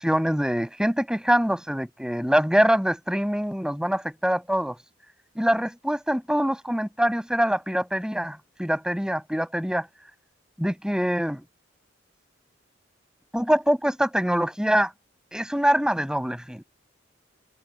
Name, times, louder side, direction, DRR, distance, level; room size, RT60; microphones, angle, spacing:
voice 1, 0.0-4.8 5.4-9.9 10.6-11.4 13.3-14.9 15.3-16.6, equal, 5° right, 6.1 m, -24 dB
head